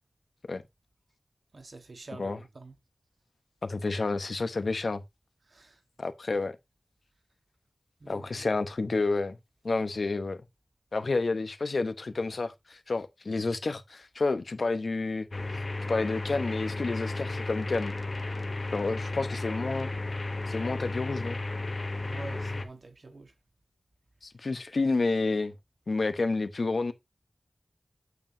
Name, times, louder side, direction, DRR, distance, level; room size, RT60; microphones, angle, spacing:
voice 1, 1.5-2.7 5.5-5.8 8.0-8.5 21.9-23.3, right 3 dB, 70° right, 1.6 m, -46 dB
voice 2, 3.6-5.0 6.0-6.6 8.1-9.4 9.6-10.4 10.9-15.3 15.9-17.9 18.7-19.9 20.5-21.4 24.2-25.5 25.9-26.9, left 3 dB, 75° left, 1.0 m, -30 dB
sound 1, 15.3-22.6, left 2 dB, 50° left, 1.0 m, -34 dB
8.4 x 7.1 x 2.8 m
wide cardioid pair, 70°, 0 cm